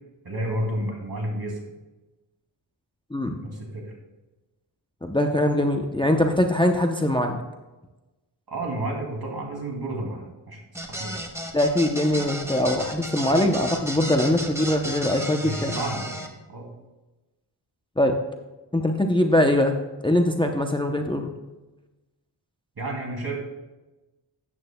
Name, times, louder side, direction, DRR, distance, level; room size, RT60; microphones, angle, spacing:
voice 1, 0.2-1.6 3.4-3.9 8.5-11.1 15.4-16.7 22.8-23.4, right 1 dB, 55° right, -1 dB, 2.7 m, -31 dB
voice 2, 5.0-7.4 11.5-15.8 18.0-18.2 18.7-19.8 20.0-21.3, left 1 dB, 10° left, 4 dB, 0.7 m, -22 dB
sound 1, 10.7-16.3, equal, 5° right, 1.0 m, -34 dB
13.0 x 9.1 x 2.2 m, 1.1 s
wide cardioid pair, 100°, 45 cm